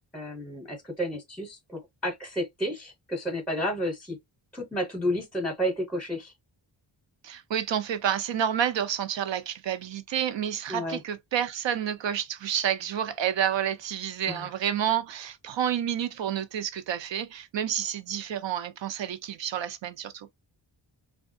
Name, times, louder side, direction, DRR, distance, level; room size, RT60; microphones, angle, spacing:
voice 1, 0.1-4.2 4.5-6.3 10.7-11.0 14.3-14.5, equal, ahead, 0.8 m, -31 dB
voice 2, 7.2-20.3, right 9 dB, 70° right, 0.6 m, -29 dB
3.4 x 2.2 x 2.6 m
wide cardioid pair, 130°, 45 cm